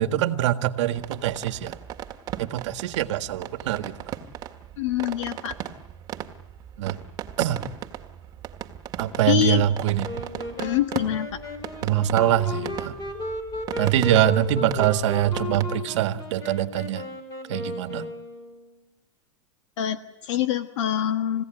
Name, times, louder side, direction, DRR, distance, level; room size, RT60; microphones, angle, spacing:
voice 1, 0.0-1.7 2.4-3.9 6.8-7.0 7.4-7.6 9.0-10.1 11.8-13.0 13.8-17.0 17.5-18.1, right 12 dB, 70° right, 9 dB, 1.7 m, -23 dB
sound 1, 1.0-15.6, right 9 dB, 25° right, 1.8 m, -37 dB
voice 2, 4.8-5.5 9.3-9.6 10.6-11.4 19.8-21.4, left 11 dB, 75° left, 9 dB, 1.4 m, -25 dB
Wind instrument woodwind instrument, 10.0-18.8, left 2 dB, 25° left, 5.1 m, -35 dB
30.0 x 17.0 x 9.1 m, 0.95 s
supercardioid pair, 150°, 16 cm